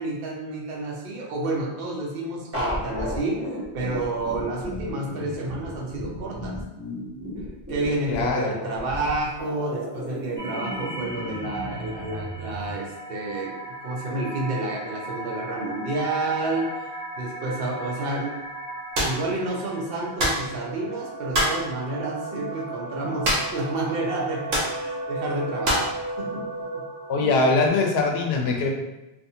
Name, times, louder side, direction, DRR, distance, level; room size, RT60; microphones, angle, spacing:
voice 1, 0.0-3.4 3.7-6.6 7.7-16.7 17.2-18.4 19.0-26.5 26.7-26.8 28.4-28.5, right 2 dB, 70° right, -2 dB, 0.9 m, -30 dB
sound 1, 2.5-12.7, equal, 15° right, 0.7 m, -34 dB
voice 2, 8.1-8.5 27.1-28.7, left 3 dB, 80° left, 2 dB, 0.8 m, -22 dB
sound 2, 10.4-27.7, right 1 dB, 30° left, 0.5 m, -36 dB
sound 3, 18.9-19.2 20.2-20.5 21.3-21.6 23.2-23.6 23.9-24.0 24.5-24.8 25.6-25.9, equal, 90° right, 1.0 m, -23 dB
2.6 x 2.5 x 2.7 m, 1.0 s
omnidirectional pair, 1.0 m